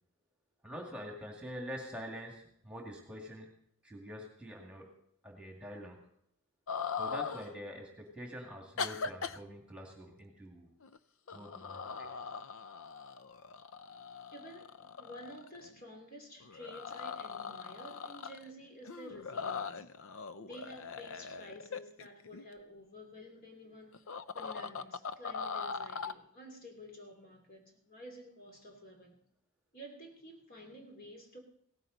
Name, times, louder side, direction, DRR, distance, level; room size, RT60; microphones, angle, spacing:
voice 1, 0.6-3.5 3.8-4.9 5.2-6.0 7.0-10.7 11.3-12.1, equal, 5° right, 1 dB, 2.2 m, -45 dB
sound 1, 6.7-7.5 8.8-9.4 10.8-11.0 11.3-15.8 16.4-18.5 18.8-22.4 23.9-26.1, left 5 dB, 60° left, 0.6 m, -40 dB
voice 2, 14.3-19.9 20.4-24.0 24.3-29.2 29.7-31.4, equal, 40° left, 2 dB, 2.9 m, -51 dB
17.5 x 14.5 x 4.0 m, 0.67 s
head